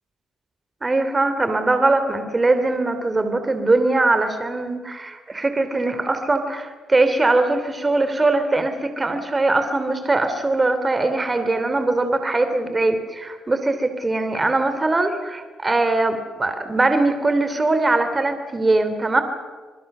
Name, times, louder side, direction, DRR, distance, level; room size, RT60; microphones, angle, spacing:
voice 1, 0.8-19.2, right 2 dB, 20° right, 8 dB, 3.1 m, -21 dB
26.0 x 22.5 x 6.8 m, 1.4 s
cardioid pair, 90°, 0 cm